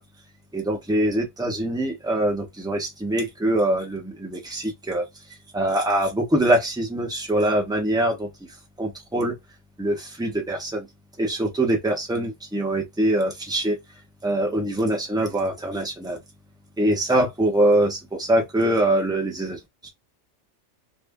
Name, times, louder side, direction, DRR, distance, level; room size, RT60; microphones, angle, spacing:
voice 1, 0.5-5.0 5.5-8.3 8.8-9.3 9.8-10.9 11.2-13.7 14.2-16.2 16.8-19.9, right 1 dB, 5° right, 0.9 m, -23 dB
2.7 x 2.6 x 3.5 m
omnidirectional pair, 1.3 m